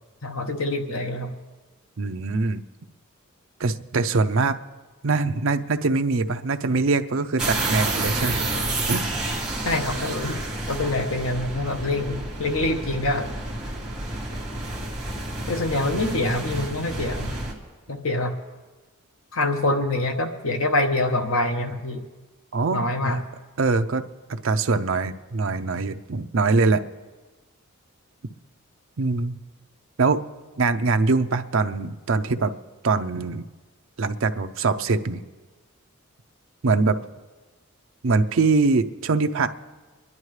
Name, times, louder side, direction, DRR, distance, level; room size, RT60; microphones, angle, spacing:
voice 1, 0.2-1.3 9.6-10.4 10.7-13.3 15.5-17.3 17.9-18.3 19.3-22.0 22.7-23.2, left 2 dB, 65° left, 5 dB, 1.0 m, -25 dB
voice 2, 2.0-2.6 3.6-4.6 5.0-8.5 8.9-9.1 22.5-23.2 23.6-26.8 29.0-29.4 30.0-30.2 30.6-32.5 32.8-33.4 34.0-35.2 36.6-37.0 38.0-39.5, right 3 dB, 60° right, 8 dB, 0.5 m, -23 dB
sound 1, 7.4-17.5, right 2 dB, ahead, 2.0 m, -29 dB
24.0 x 11.0 x 3.2 m, 1.2 s
head